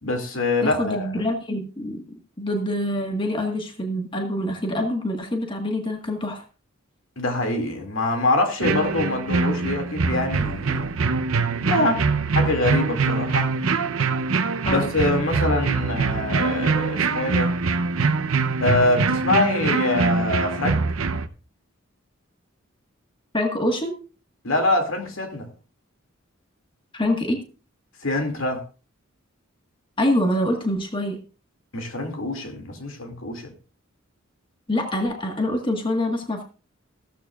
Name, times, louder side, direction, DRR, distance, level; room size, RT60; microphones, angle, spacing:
voice 1, 0.0-1.3 7.2-11.0 11.6-12.0 12.3-13.5 14.7-17.5 18.6-20.8 24.4-25.5 28.0-28.6 31.7-33.5, left 2 dB, 70° left, 2.4 m, -24 dB
voice 2, 0.6-2.0 2.4-6.4 14.6-14.9 23.3-23.9 26.9-27.4 30.0-31.2 34.7-36.4, left 1 dB, 25° left, 1.5 m, -25 dB
sound 1, 8.6-21.3, right 4 dB, 85° right, 0.7 m, -23 dB
15.5 x 13.0 x 2.4 m
head